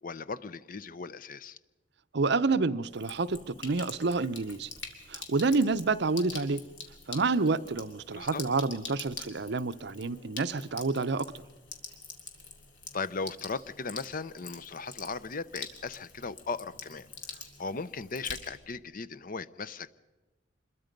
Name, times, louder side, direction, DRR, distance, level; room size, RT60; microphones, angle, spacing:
voice 1, 0.0-1.6 8.1-8.4 12.9-19.9, left 4 dB, 50° left, 16 dB, 0.6 m, -37 dB
voice 2, 2.1-4.7 5.1-6.6 7.1-11.3, right 3 dB, 65° right, 13 dB, 0.7 m, -28 dB
Sink (filling or washing), 2.8-18.8, left 4 dB, 80° left, 3.0 m, -46 dB
26.0 x 22.0 x 5.3 m, 1.2 s
head